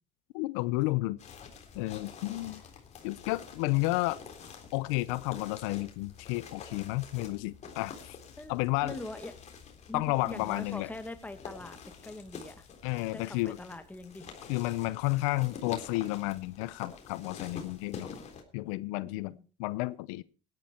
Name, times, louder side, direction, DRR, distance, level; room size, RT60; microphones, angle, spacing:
voice 1, 0.3-1.2 1.7-2.6 3.0-4.2 4.7-8.2 8.5-9.0 9.9-10.9 12.8-13.6 14.5-18.2 18.5-20.2, left 20 dB, 90° left, 18 dB, 0.6 m, -31 dB
sound 1, 1.2-18.4, left 6 dB, 40° left, 3.8 m, -48 dB
voice 2, 8.8-9.3 9.9-11.8 12.0-12.7 13.1-14.3 19.0-19.4, left 2 dB, 10° left, 8 dB, 2.0 m, -43 dB
17.0 x 10.5 x 4.4 m, 0.36 s
supercardioid pair, 100°, 17 cm